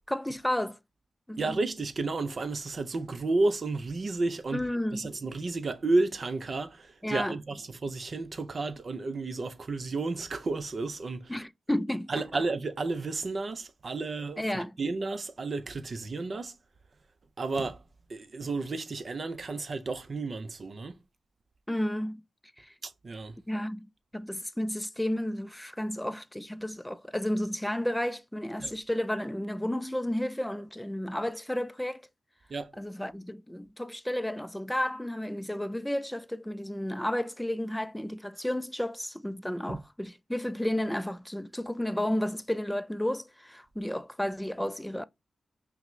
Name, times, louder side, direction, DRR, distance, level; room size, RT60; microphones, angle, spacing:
voice 1, 0.1-0.8 1.3-1.6 4.5-5.0 7.0-7.4 11.3-12.2 14.4-14.8 21.7-22.2 22.6-22.7 23.5-32.0 32.8-45.0, left 1 dB, 10° left, 0.3 m, -32 dB
voice 2, 1.4-11.4 12.1-14.4 14.8-16.5 17.4-17.8 18.1-20.9 22.8-23.4 28.6-28.7 32.5-32.7 39.7-39.8, right 3 dB, 55° right, 0.5 m, -32 dB
5.6 x 2.0 x 3.0 m
cardioid pair, 50°, 0 cm